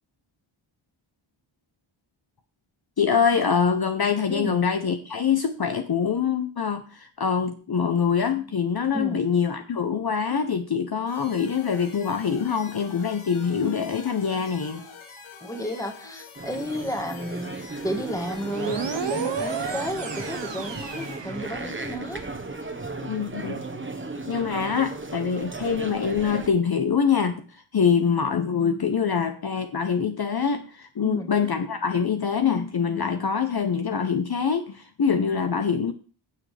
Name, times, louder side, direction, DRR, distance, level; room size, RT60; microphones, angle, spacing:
voice 1, 3.0-14.8 23.0-23.6 24.3-27.4 27.7-35.9, left 6 dB, 50° left, 7 dB, 0.8 m, -24 dB
voice 2, 4.3-4.6 8.9-9.2 15.4-22.3 31.0-31.3, equal, 5° left, 4 dB, 1.6 m, -32 dB
sound 1, 11.1-21.2, left 5 dB, 80° left, 1.6 m, -45 dB
sound 2, 16.4-26.5, right 3 dB, 25° right, 1.2 m, -36 dB
sound 3, 18.5-22.0, right 6 dB, 60° right, 1.1 m, -33 dB
15.5 x 6.2 x 3.3 m, 0.37 s
wide cardioid pair, 110°, 49 cm